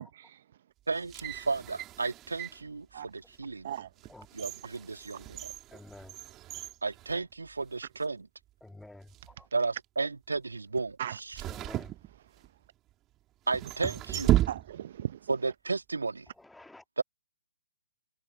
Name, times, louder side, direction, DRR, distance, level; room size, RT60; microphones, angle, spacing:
sound 1, 0.9-2.7 3.3-3.4 4.0-7.7 8.0-8.1 8.9-9.3 11.3-12.7 13.5-15.1 15.3-15.4, right 14 dB, 20° right, 3.8 m, -34 dB
voice 1, 0.9-3.7 4.3-5.5 6.8-8.3 9.5-11.4 13.5-14.4 15.3-16.3 17.0-17.1, right 4 dB, 75° right, 2.9 m, -33 dB
voice 2, 5.7-6.1 8.6-9.5 11.5-11.9 16.5-16.8, left 2 dB, 5° left, 2.0 m, -50 dB
voice 3, 14.5-15.2, right 11 dB, 45° right, 0.8 m, -37 dB
figure-of-eight pair, 130°, 0 cm